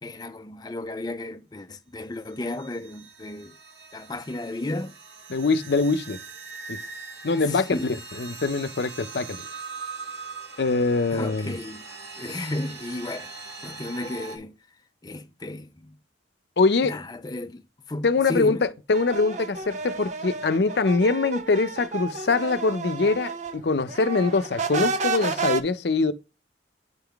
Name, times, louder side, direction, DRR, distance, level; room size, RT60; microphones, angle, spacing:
voice 1, 0.0-3.6 3.9-4.9 7.4-7.9 11.1-11.8 12.2-13.3 13.6-14.5 15.0-16.0 16.8-17.6 17.9-18.7, left 2 dB, 25° left, 0.5 m, -33 dB
sound 1, 2.3-14.4, right 4 dB, 75° right, 1.3 m, -41 dB
voice 2, 5.3-6.2 6.7-6.8 7.2-9.4 10.6-11.5 16.6-17.0 18.0-26.1, left 3 dB, 70° left, 0.6 m, -23 dB
sound 2, 18.9-23.6 23.9-25.6, right 4 dB, 40° right, 0.6 m, -31 dB
9.5 x 3.5 x 3.6 m
head